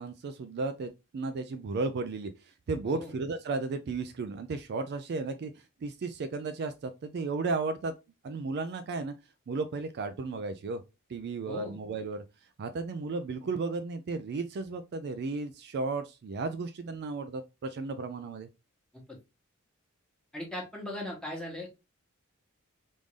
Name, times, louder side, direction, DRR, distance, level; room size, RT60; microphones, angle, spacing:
voice 1, 0.0-7.9 8.2-9.1 9.5-10.8 11.1-12.2 12.6-18.5, right 3 dB, 50° right, 0.3 m, -34 dB
voice 2, 11.5-11.8 18.9-19.2 20.3-21.7, left 1 dB, 5° left, 1.1 m, -39 dB
3.5 x 2.6 x 3.1 m
head